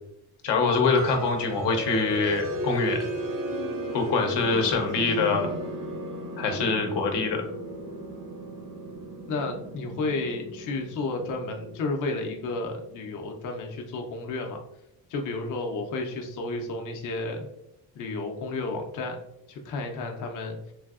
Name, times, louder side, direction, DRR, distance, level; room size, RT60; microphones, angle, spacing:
voice 1, 0.4-3.1 3.9-5.5 6.4-7.4, left 4 dB, 85° left, 3 dB, 0.7 m, -24 dB
sound 1, 0.7-13.2, right 1 dB, 50° right, 0.5 m, -35 dB
voice 2, 9.3-14.6 15.1-17.5 18.0-19.2 19.5-20.6, left 3 dB, 50° left, 3 dB, 0.5 m, -32 dB
3.2 x 2.6 x 2.3 m, 0.79 s
cardioid pair, 145°, 41 cm